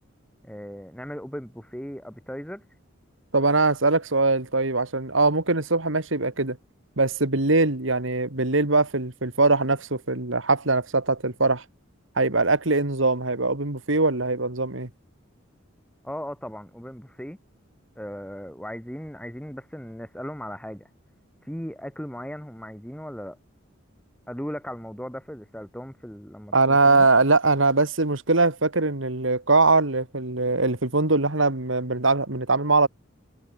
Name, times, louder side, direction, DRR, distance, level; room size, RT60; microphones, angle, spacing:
voice 1, 0.4-2.6 16.0-17.4 17.9-20.9 21.4-23.4 24.3-27.1, equal, 5° left, 5.1 m, -37 dB
voice 2, 3.3-6.6 7.0-11.6 12.2-14.9 26.5-32.9, right 3 dB, 75° right, 2.4 m, -22 dB
head